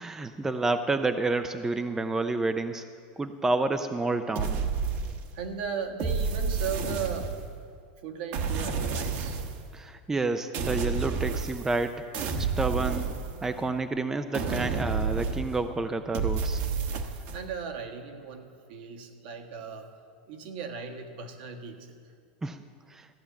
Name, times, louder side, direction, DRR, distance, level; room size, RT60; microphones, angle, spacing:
voice 1, 0.0-2.8 3.2-4.6 9.7-12.0 12.4-13.1 13.4-16.6 22.4-22.6 22.9-23.1, right 3 dB, 10° right, 9 dB, 0.4 m, -29 dB
sound 1, 4.3-5.5 6.0-7.6 8.3-9.6 10.5-11.8 12.1-13.7 14.3-15.7 16.1-17.4, right 5 dB, 45° right, 1.2 m, -30 dB
voice 2, 5.3-7.3 8.0-9.4 17.1-19.9 20.3-22.1, right 6 dB, 65° right, 3 dB, 1.6 m, -37 dB
14.5 x 8.9 x 7.1 m, 2.2 s
supercardioid pair, 145°, 5 cm